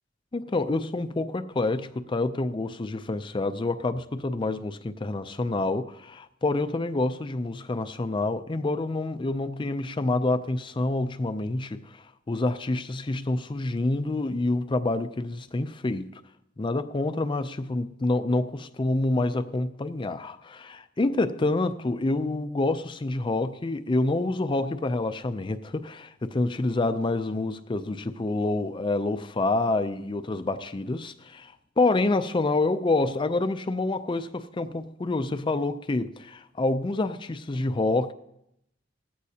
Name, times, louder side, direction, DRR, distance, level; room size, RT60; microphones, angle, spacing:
voice 1, 0.3-16.2 16.6-38.1, left 2 dB, 25° left, 0.4 m, -27 dB
18.0 x 15.0 x 2.8 m
head